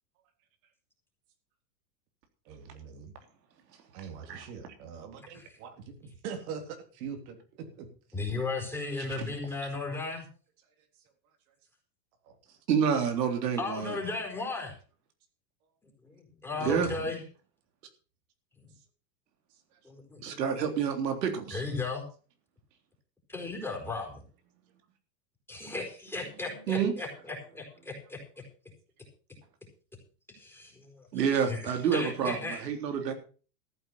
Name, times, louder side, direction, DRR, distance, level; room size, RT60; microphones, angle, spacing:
voice 1, 2.5-3.1 3.9-7.4 7.8-8.2 12.2-12.6 16.6-17.1 19.7-19.8, right 6 dB, 60° right, 5 dB, 3.7 m, -43 dB
voice 2, 8.1-10.2 13.6-14.7 16.0-17.2 19.8-20.7 21.5-22.1 23.3-24.2 25.5-28.2 30.3-32.6, left 3 dB, 5° left, 1 dB, 4.3 m, -36 dB
voice 3, 12.7-14.0 16.6-16.9 20.2-21.6 26.7-26.9 31.1-33.1, right 7 dB, 85° right, 5 dB, 3.6 m, -28 dB
14.0 x 9.0 x 5.7 m, 0.38 s
supercardioid pair, 140°, 48 cm